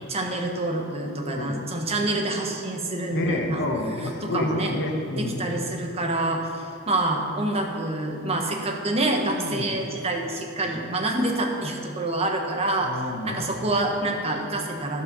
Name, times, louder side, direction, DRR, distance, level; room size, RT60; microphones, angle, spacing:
voice 1, 0.1-3.6 4.0-4.7 5.1-12.9 13.2-15.0, right 2 dB, 30° right, 1 dB, 1.1 m, -27 dB
voice 2, 1.2-1.6 3.1-5.4 9.4-9.7 12.8-13.4, left 2 dB, 60° left, 2 dB, 1.2 m, -29 dB
11.5 x 4.9 x 6.7 m, 3.0 s
head